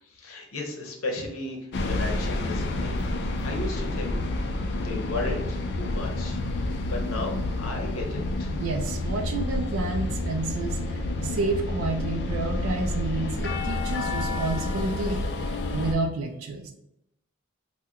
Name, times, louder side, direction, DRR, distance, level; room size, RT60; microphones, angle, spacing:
voice 1, 0.0-4.2 4.8-6.6 6.9-8.5, left 2 dB, 85° left, 1 dB, 0.8 m, -35 dB
sound 1, 1.7-16.0, left 2 dB, 50° left, 0.3 m, -29 dB
voice 2, 8.6-16.7, right 3 dB, 80° right, 4 dB, 0.4 m, -30 dB
2.8 x 2.1 x 3.5 m, 0.80 s
head